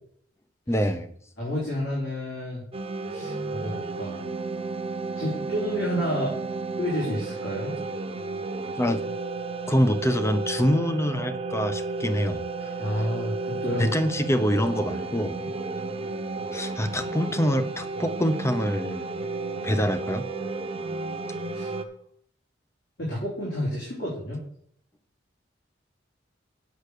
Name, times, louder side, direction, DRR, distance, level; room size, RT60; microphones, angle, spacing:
voice 1, 0.7-1.1 8.8-9.0 9.7-12.5 13.8-15.5 16.5-19.1 19.6-20.3, equal, 15° left, 10 dB, 0.7 m, -25 dB
voice 2, 1.4-2.6 3.1-4.2 5.2-6.3 6.8-7.7 12.8-13.8 21.5-21.7 23.0-24.4, equal, 70° left, -6 dB, 3.7 m, -30 dB
sound 1, 2.7-21.8, right 3 dB, 30° right, 0.9 m, -32 dB
8.3 x 6.4 x 6.7 m, 0.66 s
head